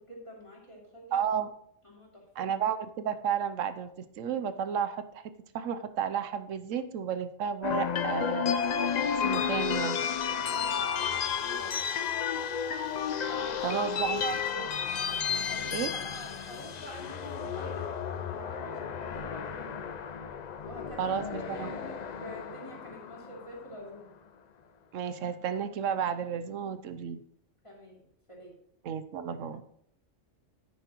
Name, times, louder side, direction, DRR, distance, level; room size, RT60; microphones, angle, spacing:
voice 1, 0.1-1.2 1.8-2.2 10.5-11.9 13.3-14.7 15.2-19.9 20.6-24.1 27.6-28.5, equal, 25° left, -4 dB, 2.9 m, -46 dB
voice 2, 1.1-1.5 2.4-8.5 9.1-10.0 13.6-14.7 15.7-15.9 21.0-21.8 24.9-27.2 28.8-29.6, right 8 dB, 85° right, 11 dB, 1.0 m, -32 dB
sound 1, 7.6-23.8, left 7 dB, 65° left, 0.4 m, -32 dB
sound 2, 13.8-14.6 14.9-15.0 15.6-16.1 16.6-16.7, right 2 dB, 40° right, 2.5 m, -55 dB
9.7 x 9.4 x 3.0 m, 0.69 s
omnidirectional pair, 1.3 m